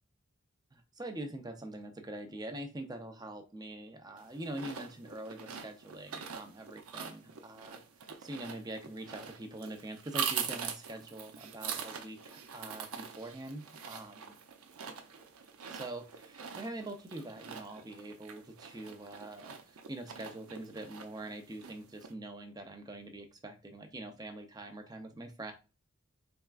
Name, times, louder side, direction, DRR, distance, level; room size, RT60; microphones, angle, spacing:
voice 1, 0.7-14.2 15.7-25.5, right 1 dB, 20° right, 6 dB, 0.5 m, -44 dB
sound 1, 4.2-22.1, right 7 dB, 85° right, 0.6 m, -43 dB
4.2 x 3.5 x 2.4 m, 0.30 s
head